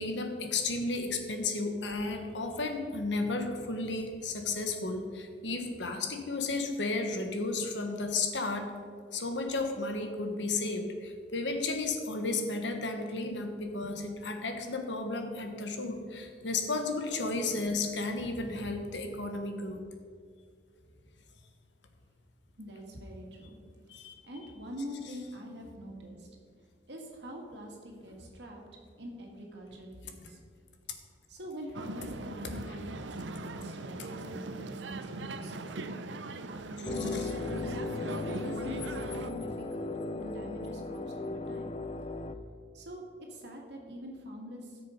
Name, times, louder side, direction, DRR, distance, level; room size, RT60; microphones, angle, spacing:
voice 1, 0.0-8.7 9.1-19.8 23.9-24.1 37.0-37.3, left 3 dB, 75° left, 5 dB, 1.3 m, -33 dB
voice 2, 18.1-18.6 20.9-21.0 22.6-23.6 24.2-26.3 26.9-28.6 29.0-30.4 31.3-35.8 36.5-37.8 38.1-39.9 40.2-41.7 42.7-44.8, equal, 65° right, 0 dB, 2.1 m, -44 dB
sound 1, 31.7-39.3, right 2 dB, 85° right, 0.7 m, -40 dB
sound 2, 36.8-42.3, left 3 dB, 35° left, 0.6 m, -36 dB
13.5 x 6.8 x 5.1 m, 2.1 s
head